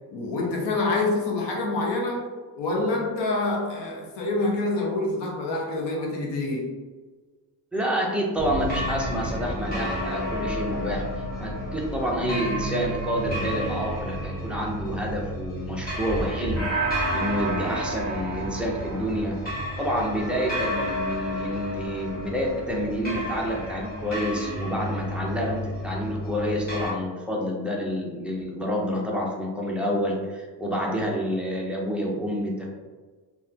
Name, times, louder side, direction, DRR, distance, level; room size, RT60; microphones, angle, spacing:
voice 1, 0.1-2.2 2.6-6.7, left 2 dB, 75° left, -1 dB, 1.1 m, -26 dB
voice 2, 7.7-11.0 11.4-16.9 17.1-19.3 19.8-32.7, equal, 5° right, -3 dB, 0.6 m, -28 dB
sound 1, 8.4-26.9, equal, 20° left, 1.4 m, -31 dB
3.9 x 2.9 x 2.7 m, 1.4 s
cardioid pair, 140°, 42 cm